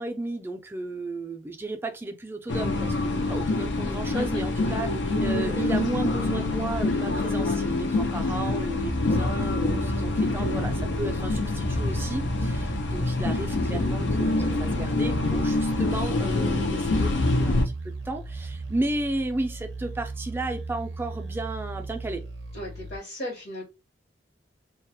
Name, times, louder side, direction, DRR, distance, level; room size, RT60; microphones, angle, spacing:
voice 1, 0.0-22.2, right 2 dB, 15° right, 0.3 m, -34 dB
sound 1, 2.5-17.6, left 2 dB, 90° left, 0.5 m, -26 dB
voice 2, 3.8-4.4 22.5-23.6, left 1 dB, 70° left, 0.9 m, -35 dB
sound 2, 8.8-23.0, right 3 dB, 80° right, 0.4 m, -37 dB
2.2 x 2.0 x 2.8 m
head